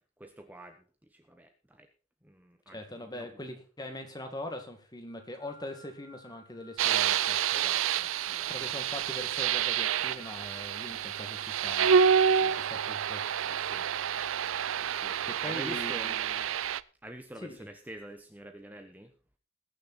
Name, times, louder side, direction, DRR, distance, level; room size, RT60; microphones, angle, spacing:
voice 1, 0.2-0.8 1.1-1.9 2.2-3.3 7.5-8.5 12.3-12.6 13.5-13.9 14.8-15.2 15.4-16.5 17.0-19.1, right 1 dB, 10° right, 6 dB, 0.8 m, -47 dB
voice 2, 2.7-7.4 8.5-13.2 13.7-13.8 15.3-16.2 17.4-17.7, left 1 dB, 20° left, 5 dB, 2.1 m, -42 dB
sound 1, 5.1-12.8, left 1 dB, 60° left, 2.3 m, -57 dB
sound 2, 6.8-16.8, right 8 dB, 85° right, 0.5 m, -28 dB
20.0 x 6.8 x 4.2 m, 0.35 s
head